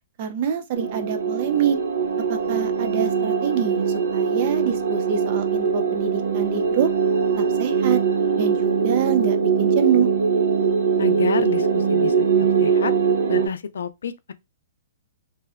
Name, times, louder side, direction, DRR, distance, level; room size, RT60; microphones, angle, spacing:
voice 1, 0.2-1.8 2.3-3.8 4.1-6.9 7.4-8.0 8.4-10.1, right 8 dB, 35° right, 0.4 m, -26 dB
sound 1, 0.7-13.5, right 6 dB, 75° right, 0.8 m, -21 dB
voice 2, 11.0-12.9 13.3-14.3, left 6 dB, 90° left, 0.3 m, -29 dB
2.6 x 2.0 x 2.3 m
hypercardioid pair, 170°, 0 cm